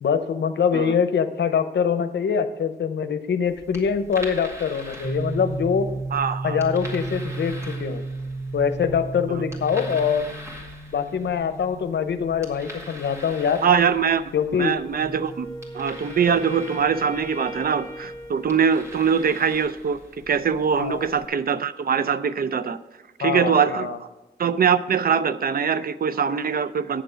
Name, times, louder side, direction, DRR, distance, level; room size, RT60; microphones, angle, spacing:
voice 1, 0.0-5.9 6.4-8.0 8.5-10.3 10.9-13.6 14.3-14.8 20.8-21.1 23.2-24.0, left 7 dB, 80° left, 10 dB, 0.7 m, -24 dB
sound 1, 3.4-21.3, left 1 dB, 15° right, 1.9 m, -44 dB
sound 2, 5.0-18.7, right 3 dB, 85° right, 0.9 m, -36 dB
voice 2, 6.1-6.6 9.3-9.4 13.6-14.2 14.5-15.5 15.7-22.8 23.2-24.1 24.4-27.0, right 7 dB, 55° right, 14 dB, 0.4 m, -22 dB
Wind instrument woodwind instrument, 14.8-19.1, equal, 35° right, 2.3 m, -39 dB
8.9 x 6.9 x 5.1 m, 1.1 s
wide cardioid pair, 90°, 18 cm